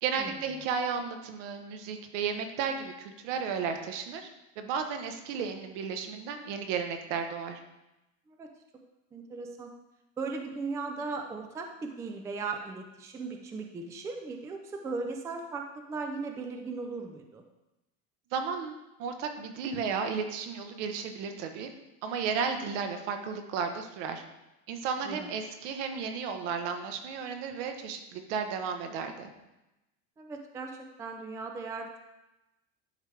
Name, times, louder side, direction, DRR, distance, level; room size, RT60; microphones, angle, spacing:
voice 1, 0.0-4.3 4.6-7.6 18.3-21.7 22.0-24.2 24.7-29.3, right 6 dB, 75° right, 6 dB, 1.1 m, -33 dB
voice 2, 9.1-9.7 10.2-17.4 25.0-25.3 30.2-32.0, right 4 dB, 10° right, 4 dB, 0.3 m, -37 dB
10.5 x 5.0 x 3.3 m, 0.97 s
cardioid pair, 160°, 36 cm